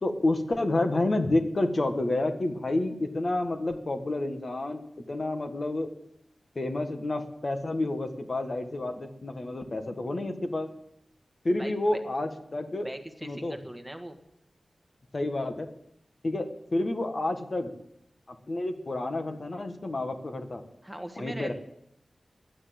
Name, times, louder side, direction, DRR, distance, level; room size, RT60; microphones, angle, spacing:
voice 1, 0.0-4.8 5.1-5.9 6.5-10.7 11.4-12.9 13.2-13.6 15.1-15.7 16.2-17.7 18.3-20.6 21.2-21.5, left 2 dB, 45° left, 6 dB, 1.5 m, -29 dB
voice 2, 11.6-12.0 12.8-14.2 20.8-21.5, right 1 dB, 5° right, 5 dB, 1.4 m, -39 dB
11.5 x 9.5 x 7.6 m, 0.76 s
wide cardioid pair, 85°, 0 cm